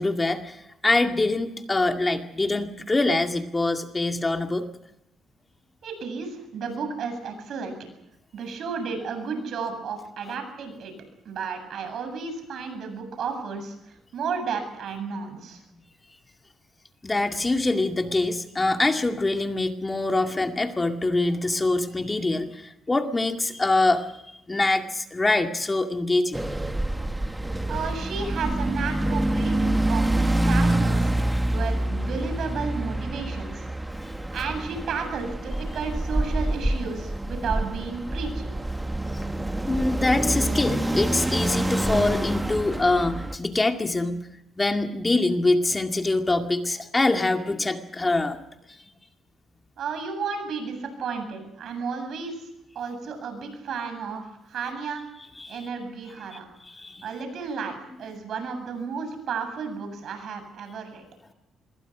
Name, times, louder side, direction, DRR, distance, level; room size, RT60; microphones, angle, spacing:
voice 1, 0.0-4.7 17.0-24.1 24.5-26.4 34.0-34.1 38.9-39.2 39.5-44.3 44.6-48.4 55.4-55.7 56.3-57.0, left 2 dB, 20° left, 5 dB, 2.2 m, -24 dB
voice 2, 5.8-7.8 8.3-10.9 11.2-13.7 14.1-15.6 27.7-33.7 34.3-38.5 49.8-52.5 52.7-55.0 55.5-56.5 57.0-61.0, right 5 dB, 65° right, 7 dB, 7.8 m, -33 dB
sound 1, 26.3-43.4, right 1 dB, 10° right, 1.3 m, -26 dB
26.0 x 22.0 x 6.2 m, 0.86 s
cardioid pair, 90°, 0 cm